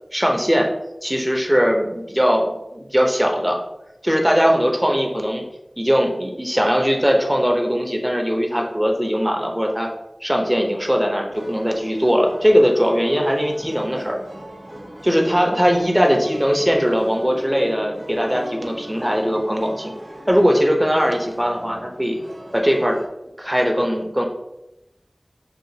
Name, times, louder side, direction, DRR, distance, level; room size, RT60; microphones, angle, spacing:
voice 1, 0.1-0.7 1.0-3.6 4.0-5.4 5.8-9.9 10.2-14.2 15.0-19.9 20.3-22.2 22.5-23.0 23.4-24.2, equal, 10° right, 1 dB, 0.9 m, -20 dB
sound 1, 11.3-23.1, right 1 dB, 75° right, 1.0 m, -39 dB
6.9 x 2.5 x 2.8 m, 0.90 s
wide cardioid pair, 50°, 0 cm